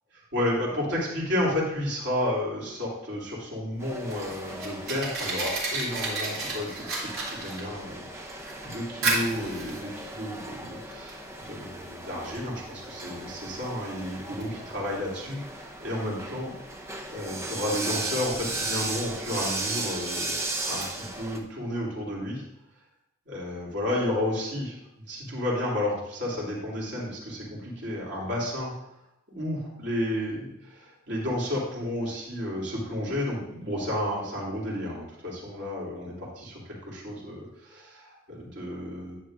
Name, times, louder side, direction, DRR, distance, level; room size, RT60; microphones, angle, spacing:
voice 1, 0.3-16.5 17.1-22.4 23.3-24.8 25.1-28.7 29.3-39.1, left 1 dB, 55° right, -5 dB, 3.0 m, -32 dB
Fire, 3.7-21.4, right 3 dB, 75° right, 3.1 m, -36 dB
sound 1, 3.8-21.4, right 2 dB, 10° right, 0.7 m, -36 dB
10.5 x 8.6 x 2.6 m, 0.85 s
head